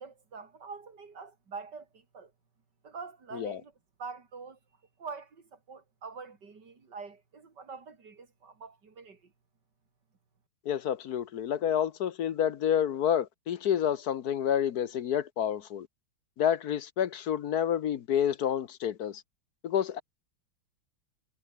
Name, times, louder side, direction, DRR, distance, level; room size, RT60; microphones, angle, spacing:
voice 1, 0.0-2.3 2.8-3.7 4.0-4.6 5.0-9.3, right 5 dB, 55° right, 3.7 m, -45 dB
voice 2, 10.6-15.9 16.4-19.2 19.6-20.0, left 9 dB, 60° left, 1.2 m, -29 dB
omnidirectional pair, 2.3 m